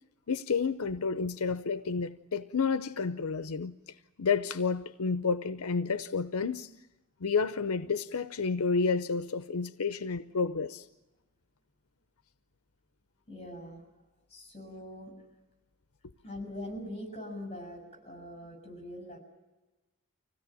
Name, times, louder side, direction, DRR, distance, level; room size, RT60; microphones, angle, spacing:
voice 1, 0.3-3.7 4.2-6.7 7.2-10.9, left 5 dB, 85° left, 0.7 m, -30 dB
voice 2, 13.3-14.0 14.3-15.1 16.2-19.2, left 1 dB, 30° left, 7.2 m, -42 dB
25.5 x 16.5 x 9.1 m
head